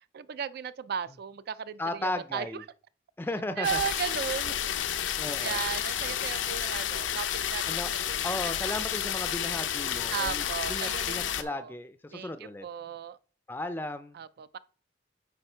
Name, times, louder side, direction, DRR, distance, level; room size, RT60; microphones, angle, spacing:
voice 1, 0.1-2.7 3.6-4.5 5.4-8.3 10.1-11.7 12.1-13.2 14.1-14.6, right 8 dB, 55° right, 0.3 m, -36 dB
voice 2, 1.8-2.6 3.2-3.8 5.2-5.6 7.7-7.9 8.2-12.7 13.5-14.2, left 1 dB, 10° left, 0.4 m, -35 dB
sound 1, 3.6-11.4, left 10 dB, 85° left, 0.6 m, -31 dB
9.0 x 3.6 x 4.4 m
head